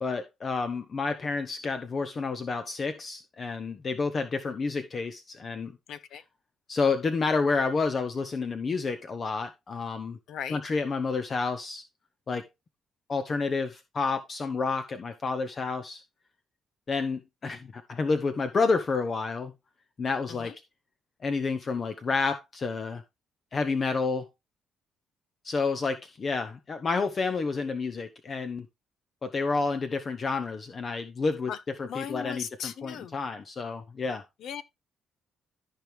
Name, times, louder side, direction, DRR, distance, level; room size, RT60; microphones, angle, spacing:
voice 1, 0.0-5.8 6.7-10.2 10.5-11.8 12.3-12.4 13.1-16.0 16.9-19.5 20.0-20.5 21.2-23.0 23.5-24.3 25.4-28.7 29.2-31.5 31.8-34.2, left 4 dB, 40° left, 0.9 m, -29 dB
voice 2, 5.9-6.2 10.3-10.6 20.3-20.5 31.5-31.6 31.9-33.2 34.4-34.6, left 8 dB, 75° left, 0.9 m, -37 dB
14.0 x 4.7 x 3.3 m
cardioid pair, 90°, 0 cm